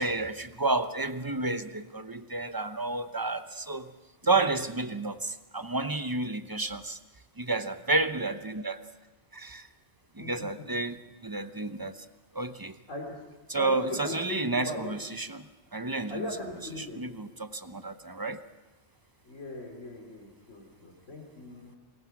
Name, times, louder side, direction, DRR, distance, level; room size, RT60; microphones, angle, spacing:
voice 1, 0.0-3.9 4.2-7.0 7.4-8.8 9.3-9.7 10.1-12.1 12.3-12.8 13.5-16.3 16.9-18.4, right 2 dB, 20° right, 10 dB, 0.7 m, -31 dB
voice 2, 4.2-4.6 5.1-5.2 5.6-5.7 10.2-10.6 12.9-13.2 13.5-15.0 16.1-17.0 19.2-21.8, left 1 dB, 90° left, 0 dB, 3.8 m, -39 dB
25.0 x 21.5 x 6.0 m, 1.1 s
omnidirectional pair, 1.2 m